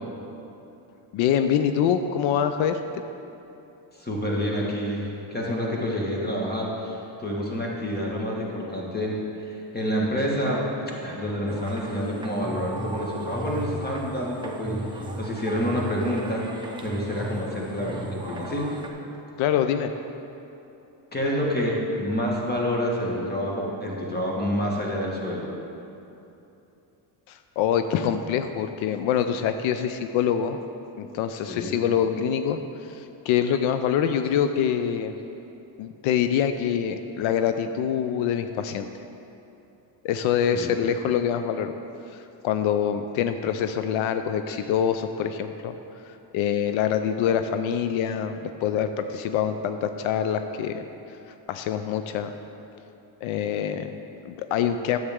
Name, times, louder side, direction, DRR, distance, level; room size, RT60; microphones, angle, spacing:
voice 1, 1.1-3.0 19.4-19.9 27.3-30.6 31.0-35.2 35.8-38.9 40.0-41.7 42.1-45.7 46.1-51.2 51.5-52.3 53.2-55.0, left 8 dB, 85° left, 9 dB, 0.5 m, -25 dB
voice 2, 4.0-9.2 9.4-10.6 11.0-14.8 15.2-16.5 16.8-18.7 21.1-25.5 31.4-31.7 40.5-40.7 44.5-44.6, equal, 20° left, -2 dB, 1.6 m, -28 dB
sound 1, 11.5-18.9, right 1 dB, 10° right, 0.7 m, -35 dB
9.9 x 7.9 x 3.6 m, 2.9 s
cardioid pair, 115°, 46 cm